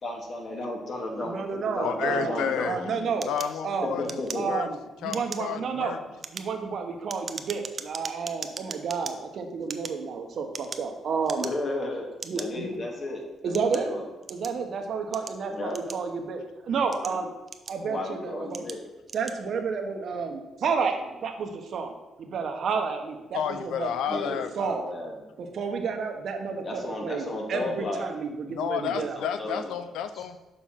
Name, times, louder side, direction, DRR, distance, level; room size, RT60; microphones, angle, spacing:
voice 1, 0.0-3.2 3.8-4.5 11.4-12.1 12.3-14.0 15.5-15.8 17.0-17.2 17.9-18.8 24.1-25.1 26.6-28.0 28.8-29.8 30.1-30.2, left 2 dB, 40° left, 1 dB, 1.8 m, -34 dB
voice 2, 1.2-3.3 3.6-3.9 4.3-6.0 6.3-11.4 12.2-12.7 13.4-13.9 14.3-17.3 17.7-18.7 19.1-21.9 22.2-24.2 24.6-24.9 25.4-29.2, right 5 dB, 60° right, 5 dB, 1.1 m, -31 dB
voice 3, 1.8-2.8 3.3-4.2 4.5-4.7 5.0-6.0 23.3-24.5 28.5-30.4, left 8 dB, 85° left, 10 dB, 0.4 m, -31 dB
sound 1, 3.2-4.7 5.1-5.5 6.1-9.1 9.6-10.9 11.2-11.8 12.2-12.5 13.1-14.6 15.1-16.3 16.8-18.0 18.5-18.8 19.0-19.4, right 4 dB, 40° right, 0.6 m, -39 dB
6.5 x 5.0 x 5.7 m, 1.0 s
cardioid pair, 90°, 0 cm